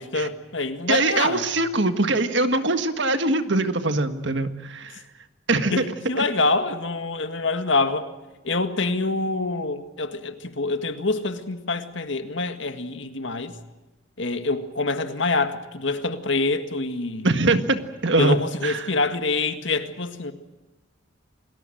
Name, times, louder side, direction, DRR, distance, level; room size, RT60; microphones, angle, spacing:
voice 1, 0.0-1.4 5.7-8.1 8.4-13.5 14.2-17.2 18.2-20.3, left 3 dB, 65° left, 1.9 m, -26 dB
voice 2, 0.9-5.0 5.5-5.8 6.2-6.3 17.2-17.8 18.0-18.9, right 2 dB, 60° right, 1.7 m, -22 dB
28.5 x 20.0 x 7.8 m
head